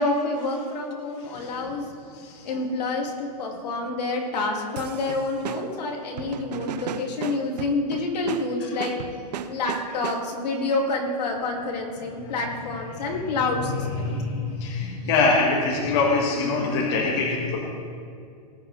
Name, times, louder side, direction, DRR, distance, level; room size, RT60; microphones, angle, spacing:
voice 1, 0.0-1.9 2.4-9.0 9.5-14.2, left 2 dB, 80° left, 0 dB, 2.7 m, -28 dB
voice 2, 1.2-1.6 2.1-2.4 8.6-8.8 12.2-12.4 12.9-17.6, left 3 dB, 45° left, -2 dB, 1.8 m, -25 dB
sound 1, 4.8-10.5, right 8 dB, 80° right, 0.8 m, -36 dB
19.5 x 9.0 x 3.4 m, 2.3 s
supercardioid pair, 165°, 21 cm